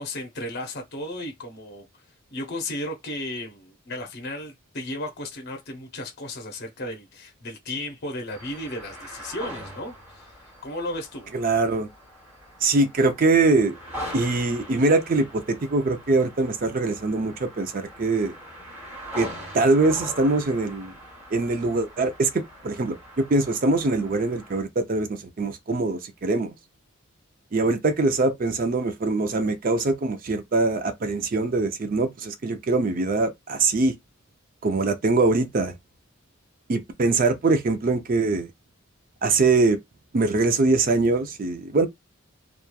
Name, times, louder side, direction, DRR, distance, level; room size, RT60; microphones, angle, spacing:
voice 1, 0.0-2.0 2.3-11.3, left 1 dB, 50° left, 0.6 m, -34 dB
sound 1, 8.3-24.6, equal, 10° right, 1.0 m, -42 dB
voice 2, 11.3-11.9 12.6-13.7 14.1-18.3 19.2-19.3 19.5-20.9 21.3-26.5 27.5-33.9 34.6-35.7 36.7-38.5 39.2-39.8 40.1-41.9, right 3 dB, 40° right, 0.4 m, -23 dB
3.0 x 2.3 x 2.2 m
head